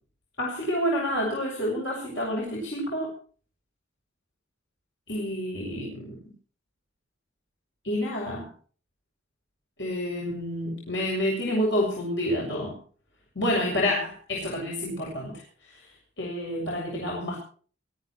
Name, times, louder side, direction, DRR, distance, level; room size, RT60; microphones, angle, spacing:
voice 1, 0.4-3.1 5.1-6.2 7.8-8.5 9.8-12.7 13.4-15.3 16.2-17.4, left 1 dB, 70° left, -3 dB, 7.2 m, -28 dB
24.0 x 14.5 x 3.2 m, 0.43 s
head